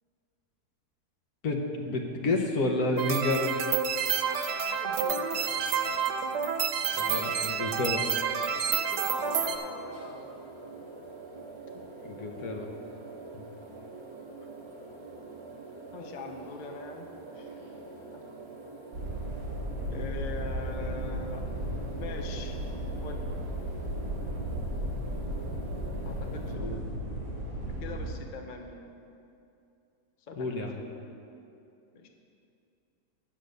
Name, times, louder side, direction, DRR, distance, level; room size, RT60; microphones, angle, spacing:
voice 1, 1.4-3.5 6.9-8.0 12.0-12.7 13.3-13.4 26.6-26.8 30.4-30.8, left 2 dB, 65° left, 3 dB, 1.4 m, -30 dB
sound 1, 3.0-9.6, right 7 dB, 85° right, 1.3 m, -29 dB
voice 2, 4.2-6.0 6.8-7.3 7.6-8.0 8.5-10.3 12.1-12.3 15.9-18.2 19.9-22.6 23.0-23.4 26.0-26.8 27.8-29.0 30.3-30.6 31.9-32.1, left 3 dB, 45° left, 3 dB, 0.6 m, -43 dB
sound 2, 9.2-26.5, right 3 dB, 20° right, 0.9 m, -45 dB
sound 3, 18.9-28.1, right 1 dB, 55° right, 2.0 m, -35 dB
8.8 x 7.2 x 6.5 m, 2.6 s
omnidirectional pair, 1.8 m